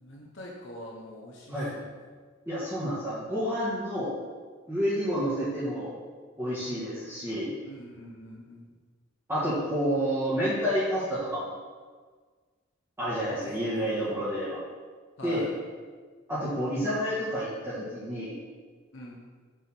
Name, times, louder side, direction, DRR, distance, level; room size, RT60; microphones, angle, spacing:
voice 1, 0.0-1.8 7.7-8.6 14.0-14.1 15.2-15.5 18.9-19.2, left 1 dB, 60° left, -3 dB, 1.1 m, -44 dB
voice 2, 2.4-4.1 4.7-5.9 6.4-7.5 9.3-11.5 13.0-14.6 15.2-15.5 16.3-18.3, equal, 10° right, -13 dB, 1.8 m, -29 dB
7.5 x 4.1 x 6.2 m, 1.5 s
head